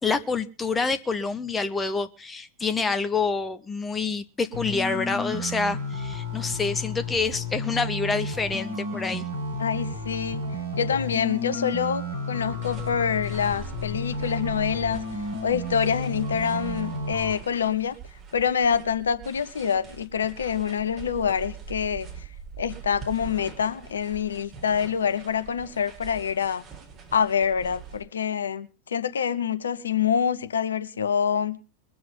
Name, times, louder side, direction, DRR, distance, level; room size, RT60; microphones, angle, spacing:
voice 1, 0.0-9.3, left 4 dB, 15° left, 1.1 m, -27 dB
sound 1, 4.5-17.3, left 1 dB, 75° right, 5.7 m, -32 dB
voice 2, 9.6-10.4 10.8-15.0 15.4-18.0 18.3-22.3 22.6-26.6 27.1-31.6, left 7 dB, 70° left, 0.9 m, -26 dB
sound 2, 12.6-28.0, right 6 dB, 30° right, 4.7 m, -43 dB
22.0 x 7.7 x 5.4 m
figure-of-eight pair, 90°, 0 cm